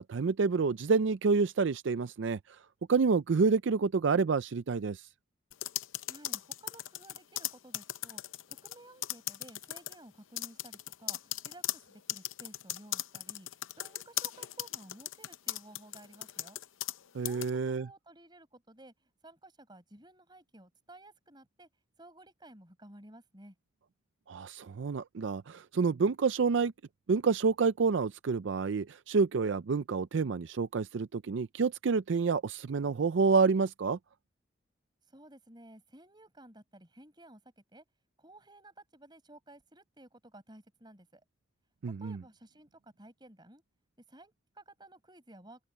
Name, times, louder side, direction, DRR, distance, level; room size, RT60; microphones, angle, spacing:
voice 1, 0.0-2.4 2.9-5.1 17.1-17.8 24.3-26.7 27.1-34.0 41.8-42.2, right 4 dB, 70° right, 0.4 m, -28 dB
sound 1, 5.5-8.8 9.0-10.0 10.4-17.0 17.3-17.5, left 14 dB, 85° left, 0.6 m, -37 dB
voice 2, 6.1-8.2 8.5-13.5 13.8-16.6 17.3-21.7 22.0-23.6 35.1-37.8 38.2-41.2 42.0-43.6 44.1-45.6, right 1 dB, 20° right, 5.2 m, -55 dB
open air
head